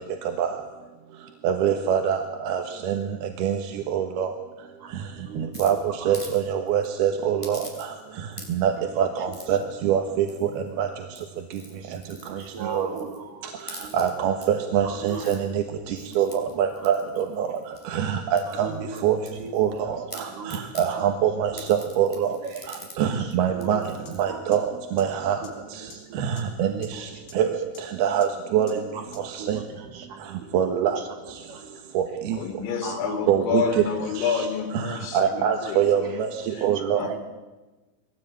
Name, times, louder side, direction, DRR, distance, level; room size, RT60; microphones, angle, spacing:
voice 1, 1.4-3.0 3.4-3.6 3.9-4.3 5.4-5.8 6.1-7.9 8.5-10.5 10.8-10.9 12.7-12.9 13.9-15.6 16.2-17.5 17.9-18.7 19.0-19.2 19.5-19.7 20.8-22.4 23.0-23.8 24.2-24.7 24.9-25.4 26.2-27.1 27.4-27.5 28.0-28.7 29.2-29.6 30.5-31.0 31.9-32.4 33.3-33.8 34.2-34.5 34.7-36.3 36.6-37.1, right 9 dB, 70° right, 4 dB, 3.0 m, -24 dB
voice 2, 4.8-6.1 8.4-8.5 8.8-9.1 11.8-11.9 12.3-13.5 14.8-15.3 15.9-16.0 18.5-19.0 19.4-19.5 21.5-21.6 23.5-23.8 24.2-24.4 25.4-25.5 25.9-26.2 26.7-27.0 28.7-30.5 30.8-30.9 31.5-31.7 32.8-33.2 36.5-37.2, right 5 dB, 50° right, 2 dB, 4.2 m, -38 dB
sound 1, 5.5-6.4 6.7-6.9 7.4-8.1 8.3-8.8 9.3-9.6 10.3-10.7 11.1-13.2 13.6-14.5 14.9-15.4 16.0-18.0 18.4-19.8 20.1-20.9 21.6-23.0 23.3-23.4 23.6-24.2, left 1 dB, 5° left, 4.3 m, -44 dB
sound 2, 24.1-24.2 24.5-24.6 25.0-25.1 25.4-25.5 25.9-26.0 26.4-26.5 26.8-26.9 27.3-27.4 27.7-27.8 28.2-28.3 28.7-28.8 29.1-29.2, left 5 dB, 50° left, 5.5 m, -45 dB
voice 3, 32.3-36.1 36.5-37.2, left 7 dB, 85° left, 3 dB, 5.0 m, -29 dB
22.5 x 18.0 x 8.9 m, 1.2 s
omnidirectional pair, 5.2 m